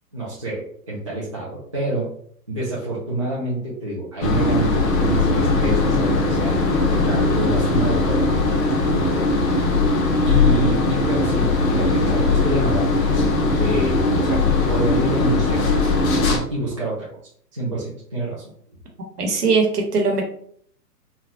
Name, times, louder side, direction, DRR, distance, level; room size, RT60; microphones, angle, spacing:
voice 1, 0.1-2.1 2.5-6.6 6.9-8.3 8.9-9.3 10.2-12.9 13.4-15.6 16.2-17.1 17.5-18.4, right 2 dB, 20° right, -8 dB, 0.3 m, -27 dB
sound 1, 4.2-16.4, left 3 dB, 55° left, 0.9 m, -19 dB
voice 2, 19.2-20.2, right 4 dB, 65° right, 1 dB, 1.1 m, -20 dB
3.1 x 2.3 x 2.9 m, 0.62 s
figure-of-eight pair, 125°, 49 cm